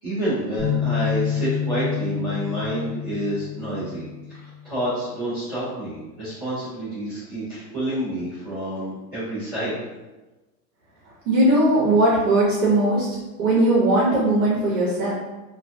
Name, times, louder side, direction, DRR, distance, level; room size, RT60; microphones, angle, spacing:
voice 1, 0.0-9.8, right 1 dB, 20° right, -16 dB, 0.3 m, -28 dB
sound 1, 0.6-4.6, left 8 dB, 10° left, 1.1 m, -28 dB
voice 2, 11.3-13.1 13.4-15.1, right 1 dB, 75° right, -5 dB, 0.8 m, -19 dB
2.4 x 2.3 x 2.5 m, 1.1 s
supercardioid pair, 180°, 44 cm